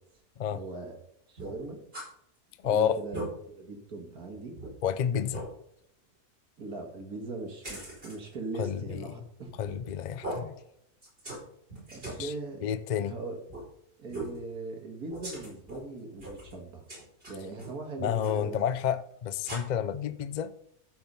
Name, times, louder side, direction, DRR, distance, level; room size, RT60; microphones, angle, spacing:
voice 1, 0.5-1.0 1.3-1.8 2.6-4.5 6.6-9.5 11.9-12.6 13.0-13.4 14.0-16.9 17.3-18.6, right 3 dB, 75° right, 2.3 m, -40 dB
sound 1, 1.4-2.1 2.5-2.6 2.9-3.3 3.9-4.0 4.6-4.7 5.3-5.5 7.6-8.2 9.5-9.9 10.2-10.4 11.0-11.4 11.7-12.2 13.5-13.6 14.1-14.4 15.1-15.8 16.2-16.5 16.9-17.7 18.2-18.4 19.4-19.6, right 2 dB, 35° right, 5.0 m, -39 dB
voice 2, 2.6-3.0 4.8-5.4 8.6-9.2 9.6-10.6 12.2-12.3 12.6-13.2 18.0-20.5, left 8 dB, 80° left, 0.4 m, -30 dB
13.0 x 4.8 x 5.4 m
omnidirectional pair, 1.6 m